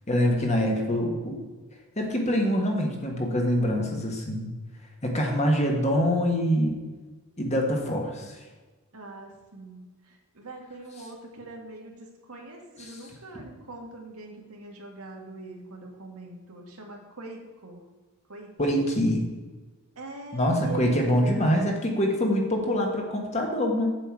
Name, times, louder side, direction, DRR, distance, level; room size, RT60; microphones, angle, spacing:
voice 1, 0.1-1.4 1.9-4.5 5.0-6.8 7.4-8.3 12.8-12.9 18.6-19.2 20.3-23.9, equal, 30° left, 1 dB, 1.5 m, -25 dB
voice 2, 8.9-17.8 18.3-18.9 20.0-21.4, right 2 dB, 80° right, 1 dB, 1.9 m, -43 dB
8.2 x 7.8 x 4.7 m, 1.2 s
head